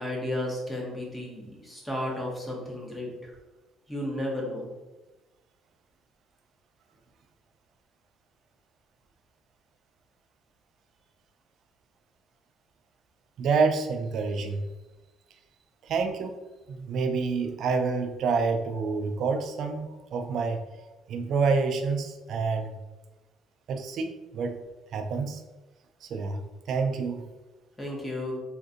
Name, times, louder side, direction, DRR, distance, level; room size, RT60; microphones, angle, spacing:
voice 1, 0.0-3.3 3.9-4.7 27.8-28.4, left 1 dB, 10° left, -2 dB, 0.8 m, -33 dB
voice 2, 13.4-14.7 15.8-16.4 16.7-20.6 21.1-22.8 23.7-24.6 24.9-25.4 26.0-26.4 26.7-27.2, right 4 dB, 60° right, 6 dB, 0.4 m, -28 dB
3.5 x 2.6 x 2.5 m, 1.1 s
cardioid pair, 120°, 0 cm